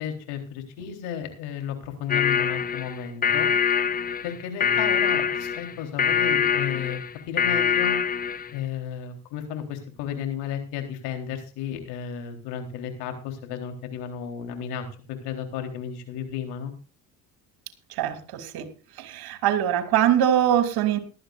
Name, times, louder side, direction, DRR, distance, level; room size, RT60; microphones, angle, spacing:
voice 1, 0.0-3.5 4.2-8.0 8.5-16.7, left 8 dB, 70° left, 4 dB, 3.9 m, -33 dB
sound 1, 2.1-8.5, left 7 dB, 20° left, 0.6 m, -24 dB
voice 2, 17.9-18.7 19.0-21.0, right 10 dB, 60° right, 8 dB, 2.9 m, -23 dB
18.0 x 13.0 x 2.6 m, 0.36 s
hypercardioid pair, 75°, 41 cm